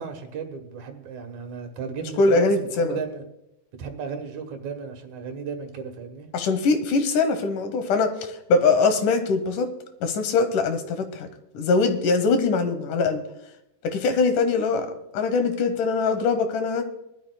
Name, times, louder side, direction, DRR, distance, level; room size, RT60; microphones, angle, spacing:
voice 1, 0.0-3.2 3.8-6.3, right 6 dB, 70° right, 5 dB, 2.5 m, -35 dB
voice 2, 2.2-3.0 6.3-8.1 8.5-9.7 10.0-11.3 11.5-13.2 13.8-14.9 15.1-16.8, left 4 dB, 90° left, 8 dB, 2.7 m, -22 dB
21.0 x 12.5 x 2.3 m, 0.85 s
omnidirectional pair, 3.5 m